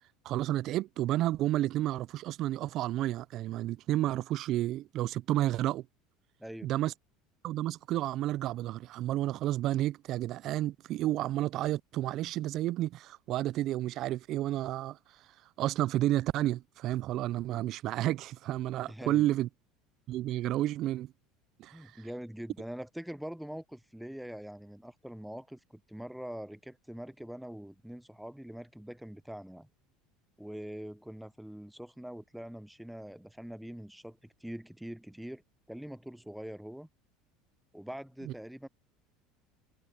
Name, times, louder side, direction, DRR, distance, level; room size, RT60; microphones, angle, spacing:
voice 1, 0.3-5.9 6.6-6.9 7.4-15.0 15.6-19.5 20.1-21.1 21.6-22.0 38.2-38.3, right 14 dB, 55° right, 0.3 m, -31 dB
voice 2, 6.4-6.7 17.5-17.6 18.9-19.3 21.7-29.7 30.4-35.4 35.7-36.9 37.7-38.7, equal, ahead, 0.5 m, -43 dB
supercardioid pair, 110°, 0 cm